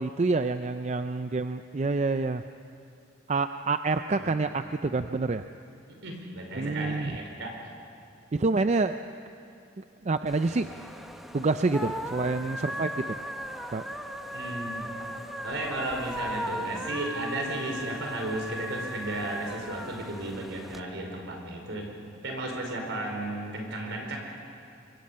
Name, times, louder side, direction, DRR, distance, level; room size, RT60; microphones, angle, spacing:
voice 1, 0.0-2.4 3.3-5.5 6.6-7.2 8.3-8.9 9.8-10.7 11.3-13.2 13.7-13.8, right 3 dB, 35° right, 9 dB, 0.4 m, -27 dB
voice 2, 6.0-7.5 12.2-12.3 14.3-14.9 15.4-21.9 22.2-24.2, right 1 dB, 65° right, 1 dB, 4.8 m, -34 dB
sound 1, 10.3-20.8, equal, ahead, 1.0 m, -37 dB
25.5 x 24.0 x 5.6 m, 2.7 s
head